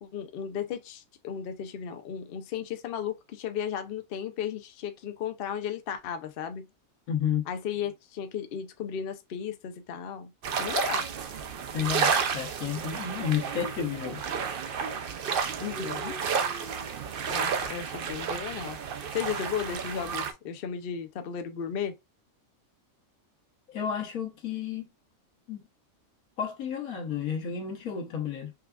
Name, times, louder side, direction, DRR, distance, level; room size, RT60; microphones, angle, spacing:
voice 1, 0.0-6.7 7.5-10.3 10.6-11.1 15.6-16.2 17.3-18.8 19.1-21.9, left 8 dB, 65° left, 0.6 m, -35 dB
voice 2, 7.1-7.5 11.7-14.2 23.7-24.8 25.5-25.7 26.4-28.5, left 8 dB, 80° left, 1.4 m, -31 dB
sound 1, 10.4-20.3, right 6 dB, 70° right, 0.5 m, -31 dB
4.6 x 2.3 x 2.2 m
omnidirectional pair, 1.5 m